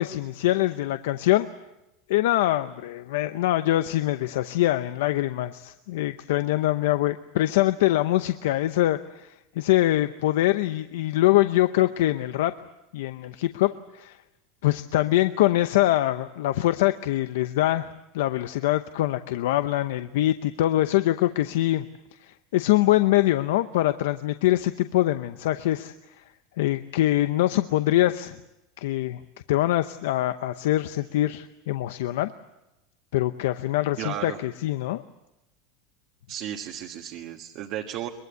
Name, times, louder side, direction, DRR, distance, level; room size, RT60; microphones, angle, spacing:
voice 1, 0.0-1.5 2.1-12.5 12.9-14.2 14.6-17.9 18.1-21.8 22.2-26.2 26.6-28.4 28.8-29.2 29.5-32.3 33.1-35.0, left 15 dB, 80° left, 11 dB, 0.8 m, -24 dB
voice 2, 34.0-34.4 36.3-38.1, right 11 dB, 45° right, 2 dB, 1.6 m, -34 dB
23.0 x 22.0 x 8.3 m, 0.96 s
supercardioid pair, 165°, 0 cm